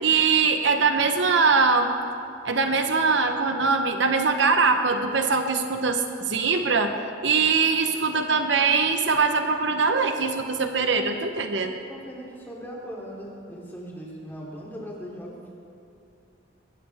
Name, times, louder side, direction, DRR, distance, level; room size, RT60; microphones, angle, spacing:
voice 1, 0.0-1.9 2.4-7.0 7.2-11.7, right 4 dB, 65° right, 6 dB, 1.0 m, -22 dB
voice 2, 11.9-15.5, equal, 10° left, -4 dB, 3.1 m, -39 dB
22.0 x 17.0 x 3.6 m, 2.5 s
head